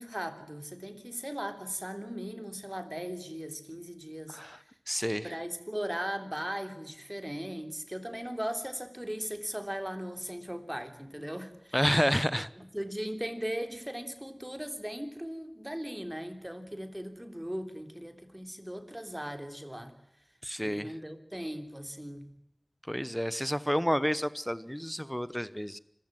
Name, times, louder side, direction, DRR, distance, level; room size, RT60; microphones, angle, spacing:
voice 1, 0.0-4.4 5.2-11.8 12.6-20.0 20.6-22.3, equal, 15° right, 8 dB, 3.3 m, -38 dB
voice 2, 4.9-5.3 11.7-12.5 20.4-20.9 22.9-25.8, equal, 5° left, 17 dB, 0.9 m, -30 dB
26.0 x 15.5 x 7.5 m, 0.84 s
wide cardioid pair, 50°, 0 cm